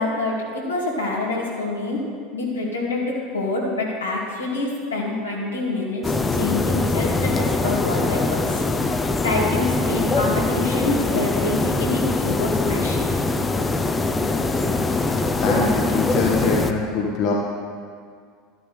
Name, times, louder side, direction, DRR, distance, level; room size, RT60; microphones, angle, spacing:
voice 1, 0.0-8.6 9.2-13.1, left 2 dB, 85° left, -4 dB, 2.3 m, -26 dB
sound 1, 6.0-16.7, left 3 dB, 20° left, 0.7 m, -22 dB
voice 2, 15.4-17.3, left 3 dB, 50° left, -1 dB, 1.4 m, -23 dB
12.5 x 12.5 x 3.4 m, 2.1 s
figure-of-eight pair, 75°, 0 cm